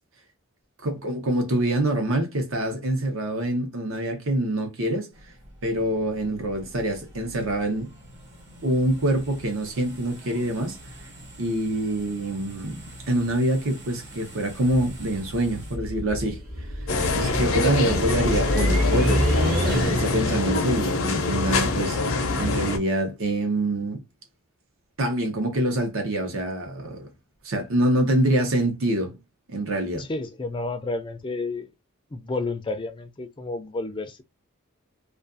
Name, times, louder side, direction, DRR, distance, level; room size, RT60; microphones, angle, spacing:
voice 1, 0.8-5.1 5.6-7.9 8.6-10.8 11.4-16.4 17.1-24.0 25.0-27.1 27.4-29.2 29.5-30.1, right 1 dB, 70° right, 0.8 m, -25 dB
sound 1, 5.1-15.8, right 1 dB, 55° right, 1.1 m, -45 dB
sound 2, 14.9-20.3, equal, 40° right, 0.8 m, -27 dB
sound 3, 16.9-22.8, left 3 dB, 70° left, 0.5 m, -25 dB
voice 2, 30.0-31.7 32.1-34.2, left 2 dB, 20° left, 0.3 m, -31 dB
2.4 x 2.3 x 2.4 m
head